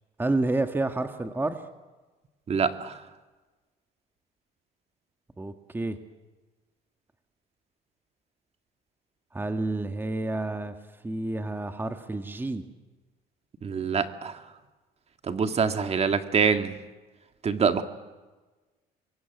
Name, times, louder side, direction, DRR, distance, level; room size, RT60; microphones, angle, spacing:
voice 1, 0.2-1.6 5.4-6.0 9.3-10.7 11.0-12.6, right 2 dB, 10° right, 7 dB, 1.7 m, -29 dB
voice 2, 2.5-3.0 13.6-14.4 15.2-16.8 17.4-17.8, right 6 dB, 40° right, 8 dB, 2.0 m, -25 dB
27.0 x 23.0 x 9.4 m, 1.2 s
cardioid pair, 110°, 17 cm